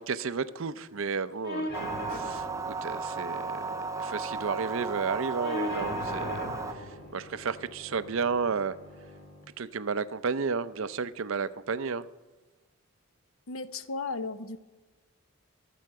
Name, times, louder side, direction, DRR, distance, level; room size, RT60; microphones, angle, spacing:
voice 1, 0.0-1.7 2.1-6.4 6.7-8.8 9.6-12.1, right 5 dB, 65° right, 0.5 m, -32 dB
sound 1, 1.4-9.4, left 1 dB, 50° left, 1.8 m, -40 dB
sound 2, 1.7-6.7, right 4 dB, 15° right, 0.5 m, -35 dB
voice 2, 13.5-14.6, left 3 dB, 75° left, 0.8 m, -35 dB
23.0 x 7.7 x 4.8 m
head